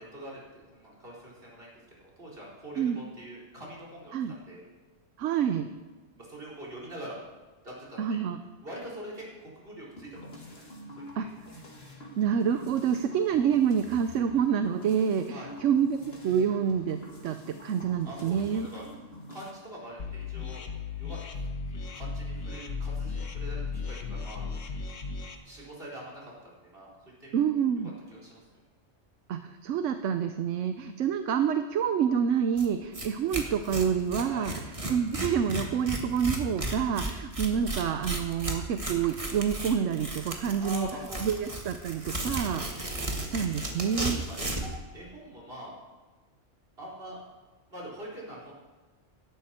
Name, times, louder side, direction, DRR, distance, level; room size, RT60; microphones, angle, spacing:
voice 1, 0.0-4.6 6.2-7.2 7.6-8.2 8.6-10.6 10.9-11.3 15.3-15.5 18.0-18.8 19.3-20.6 21.0-21.5 21.9-24.5 25.4-26.9 27.2-27.4 27.8-28.4 34.3-34.5 40.6-41.6 42.0-42.3 44.2-45.7 46.8-47.2 47.7-48.5, right 1 dB, 50° right, -4 dB, 4.5 m, -44 dB
voice 2, 5.2-5.7 8.0-8.4 11.2-11.3 12.2-18.7 27.3-27.9 29.3-34.5 34.9-40.9 41.2-42.6 43.3-44.2, right 7 dB, 75° right, 8 dB, 1.0 m, -27 dB
sound 1, 10.0-19.5, left 1 dB, 55° left, 2.4 m, -47 dB
sound 2, 20.0-25.4, left 4 dB, 85° left, 1.5 m, -35 dB
Tearing, 32.6-32.7 32.9-33.1 33.3-44.7, right 1 dB, 25° right, 1.7 m, -34 dB
16.5 x 12.5 x 4.3 m, 1.2 s
omnidirectional pair, 1.3 m